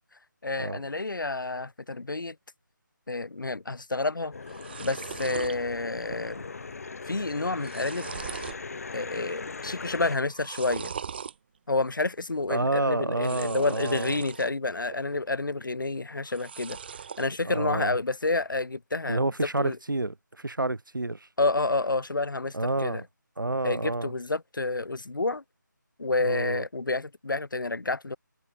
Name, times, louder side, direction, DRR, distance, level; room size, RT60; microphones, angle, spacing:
voice 1, 0.4-2.3 3.1-4.3 4.8-6.5 7.1-8.1 8.9-10.9 11.7-16.8 17.2-19.2 19.6-19.8 21.4-23.0 23.6-25.4 26.0-28.2, left 3 dB, 80° left, 0.8 m, -29 dB
sound 1, 4.0-4.1 4.3-5.6 6.0-6.4 6.7-6.8 7.3-8.6 9.1-9.5 10.3-11.3 13.1-14.5 14.9-15.5 16.2-17.3, right 7 dB, 30° right, 2.7 m, -40 dB
sound 2, 4.3-10.2, left 4 dB, 50° left, 1.9 m, -39 dB
voice 2, 12.5-14.2 17.4-17.9 19.0-21.3 22.5-23.0 23.4-24.1 26.2-26.6, right 2 dB, 80° right, 1.7 m, -29 dB
figure-of-eight pair, 160°, 11 cm